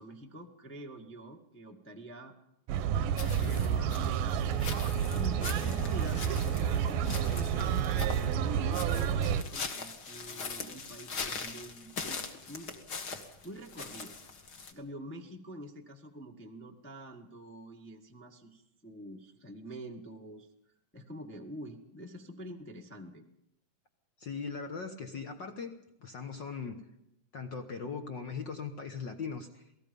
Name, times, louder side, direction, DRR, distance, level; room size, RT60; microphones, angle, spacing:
voice 1, 0.0-2.3 2.9-4.6 5.1-7.8 8.5-12.2 12.5-12.7 13.4-14.2 14.7-20.5 20.9-23.2, right 1 dB, 15° left, 1 dB, 0.4 m, -46 dB
sound 1, 2.7-9.4, right 8 dB, 80° right, 2.5 m, -30 dB
sound 2, 3.2-14.7, left 4 dB, 40° left, 1.6 m, -42 dB
Bowed string instrument, 4.2-9.4, left 3 dB, 90° left, 6.1 m, -49 dB
voice 2, 24.2-25.7 26.0-26.8 27.3-29.6, left 5 dB, 65° left, 6 dB, 1.1 m, -39 dB
28.0 x 19.0 x 5.3 m, 0.80 s
omnidirectional pair, 3.9 m